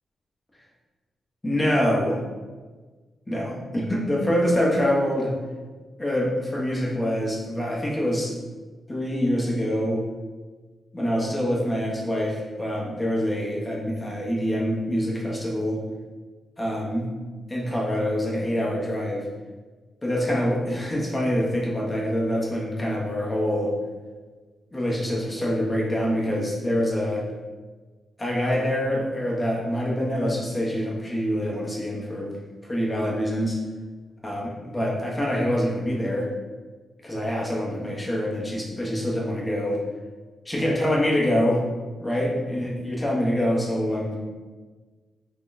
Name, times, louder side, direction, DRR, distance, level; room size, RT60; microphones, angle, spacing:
voice 1, 1.4-2.2 3.3-5.3 6.0-8.4 8.9-10.0 10.9-15.8 16.6-17.1 17.5-19.3 20.0-23.7 24.7-27.3 28.2-32.4 32.6-33.6 34.2-36.3 37.0-39.8 40.4-41.6 42.0-44.2, equal, 15° left, -3 dB, 0.8 m, -25 dB
3.8 x 3.5 x 2.6 m, 1.3 s
wide cardioid pair, 150°, 0 cm